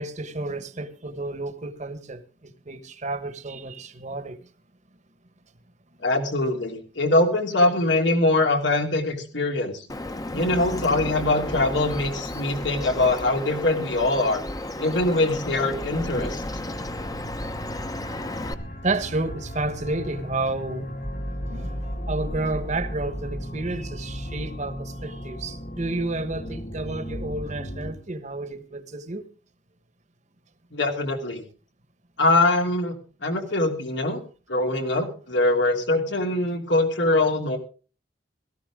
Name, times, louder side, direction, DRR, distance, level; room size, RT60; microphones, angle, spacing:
voice 1, 0.0-4.4 18.8-20.9 21.2-29.3, right 2 dB, 40° right, 1.3 m, -31 dB
voice 2, 6.0-9.9 10.3-14.4 14.8-16.4 30.7-31.4 32.2-32.9 33.2-34.2 34.5-37.6, left 2 dB, 85° left, 3.0 m, -23 dB
Bird vocalization bird call bird song, 9.9-18.5, left 1 dB, 20° left, 0.9 m, -34 dB
sound 1, 10.3-27.9, equal, 55° left, 2.0 m, -36 dB
17.0 x 14.0 x 3.7 m
head